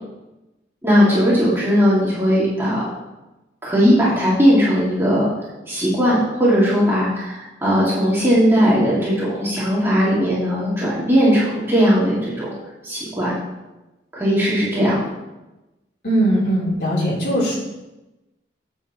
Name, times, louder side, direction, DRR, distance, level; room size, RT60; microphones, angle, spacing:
voice 1, 0.8-2.9 3.6-5.3 5.7-12.5 12.8-13.3 14.1-15.0, equal, 15° right, -8 dB, 2.1 m, -18 dB
voice 2, 16.0-17.6, right 1 dB, 65° left, -6 dB, 3.5 m, -20 dB
10.0 x 7.9 x 3.0 m, 1.0 s
head